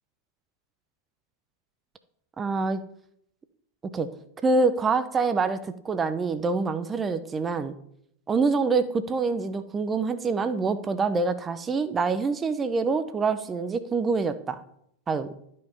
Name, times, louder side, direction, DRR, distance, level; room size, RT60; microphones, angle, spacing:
voice 1, 2.4-2.8 3.9-4.1 4.4-7.7 8.3-14.6 15.1-15.3, right 4 dB, 20° right, 12 dB, 0.7 m, -26 dB
12.5 x 5.4 x 5.5 m, 0.72 s
figure-of-eight pair, 90°, 0 cm